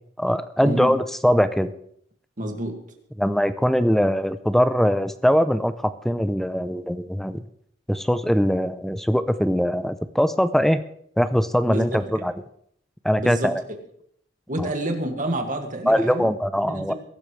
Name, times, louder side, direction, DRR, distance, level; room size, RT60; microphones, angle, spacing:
voice 1, 0.2-1.7 3.2-7.4 7.9-10.8 11.2-12.3 13.0-13.6 14.6-14.7 15.9-16.9, equal, ahead, 12 dB, 0.5 m, -21 dB
voice 2, 2.4-2.8 11.7-12.2 13.2-13.5 14.5-16.3 16.7-16.9, right 1 dB, 45° right, 4 dB, 2.0 m, -28 dB
22.0 x 12.0 x 3.2 m, 0.68 s
head